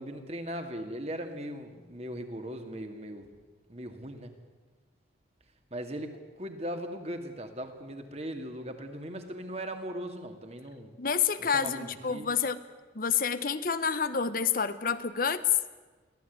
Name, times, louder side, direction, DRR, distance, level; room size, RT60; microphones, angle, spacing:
voice 1, 0.0-3.3 3.7-4.3 5.7-10.9 11.4-12.3, right 1 dB, 35° right, 6 dB, 2.3 m, -39 dB
voice 2, 11.0-12.6 12.9-15.4, left 6 dB, 50° left, 12 dB, 0.9 m, -28 dB
23.5 x 16.0 x 9.5 m, 1.3 s
head